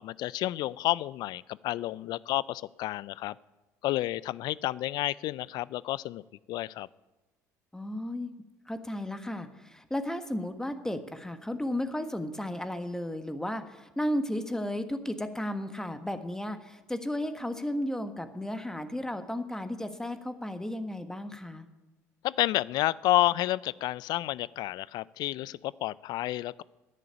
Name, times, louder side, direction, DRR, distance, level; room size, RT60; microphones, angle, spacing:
voice 1, 0.0-3.3 3.8-6.2 6.5-6.9 22.2-26.6, left 15 dB, 55° left, 21 dB, 0.4 m, -30 dB
voice 2, 7.7-8.3 8.7-21.7, left 1 dB, 5° left, 8 dB, 1.4 m, -34 dB
11.0 x 9.8 x 8.7 m, 1.1 s
hypercardioid pair, 60°, 8 cm